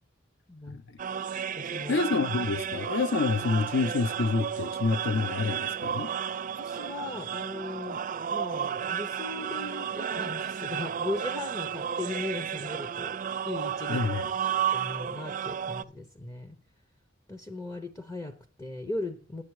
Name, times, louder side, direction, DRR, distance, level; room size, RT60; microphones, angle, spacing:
voice 1, 0.5-0.8 1.6-2.0 6.6-8.0 8.3-13.2 13.5-14.0 14.5-16.6 17.3-19.4, left 2 dB, 15° left, 0.6 m, -38 dB
sound 1, 1.0-15.8, right 8 dB, 40° right, 0.4 m, -33 dB
voice 2, 1.9-6.1 13.9-14.3, left 4 dB, 65° left, 0.5 m, -27 dB
9.9 x 7.9 x 4.6 m
head